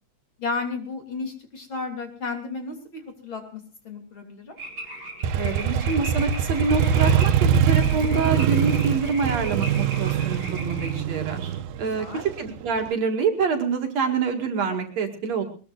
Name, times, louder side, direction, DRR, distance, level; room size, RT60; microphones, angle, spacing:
voice 1, 0.4-4.6 11.8-12.2, left 4 dB, 40° left, 4 dB, 3.7 m, -33 dB
sound 1, 4.6-10.9, right 1 dB, 35° right, 5.6 m, -38 dB
Motorcycle, 5.2-12.9, right 8 dB, 85° right, 2.4 m, -23 dB
voice 2, 5.3-15.4, right 5 dB, 60° right, 4 dB, 3.4 m, -26 dB
21.5 x 21.0 x 2.5 m, 0.39 s
omnidirectional pair, 3.6 m